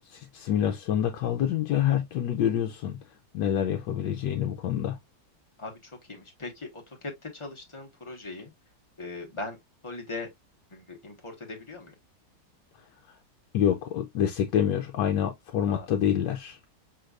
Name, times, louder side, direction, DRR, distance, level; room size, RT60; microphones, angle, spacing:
voice 1, 0.1-3.0 3.3-5.0 13.5-16.6, left 10 dB, 80° left, 1.3 m, -27 dB
voice 2, 5.6-8.5 9.0-9.6 9.8-10.3 10.7-11.9 15.7-15.9, left 3 dB, 20° left, 1.3 m, -40 dB
6.3 x 3.3 x 2.4 m
omnidirectional pair, 1.9 m